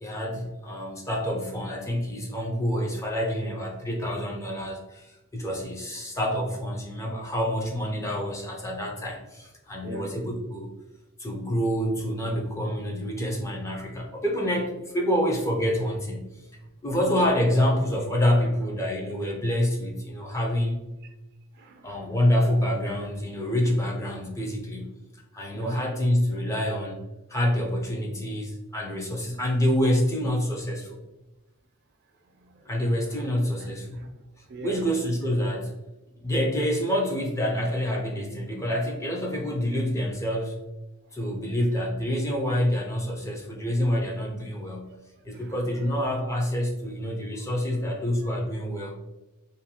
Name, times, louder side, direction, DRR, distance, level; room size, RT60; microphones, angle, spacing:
voice 1, 0.0-10.7 11.2-16.3 16.8-21.0 21.8-24.9 25.3-27.0 27.3-31.0 32.6-34.0 34.6-35.7 36.2-40.7 41.1-44.9 45.2-48.9, equal, 15° left, -1 dB, 0.4 m, -27 dB
voice 2, 9.8-10.1 16.6-17.0 18.4-18.5 21.0-21.1 21.5-22.2 25.5-25.8 32.2-33.3 33.6-34.9 41.0-41.2 44.9-45.9 47.3-47.5 48.2-48.4, right 2 dB, 50° right, 4 dB, 0.4 m, -44 dB
2.5 x 2.2 x 2.8 m, 1.0 s
head